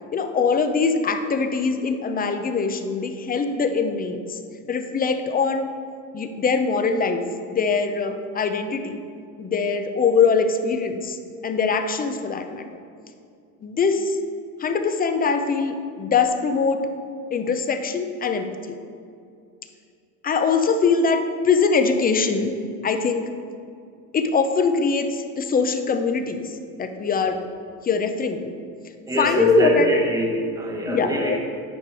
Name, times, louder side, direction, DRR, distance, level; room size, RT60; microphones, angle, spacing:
voice 1, 0.1-4.4 4.7-5.7 6.1-7.2 7.5-9.0 9.4-11.2 11.4-12.6 13.6-14.2 14.6-16.9 17.3-18.7 20.2-22.5 22.8-23.3 24.1-26.4 26.8-27.4 27.8-28.5 29.2-29.9 30.9-31.4, left 5 dB, 25° left, 7 dB, 0.6 m, -22 dB
voice 2, 29.1-31.4, equal, 10° right, 0 dB, 1.0 m, -23 dB
9.7 x 5.0 x 4.8 m, 2.4 s
supercardioid pair, 110°, 38 cm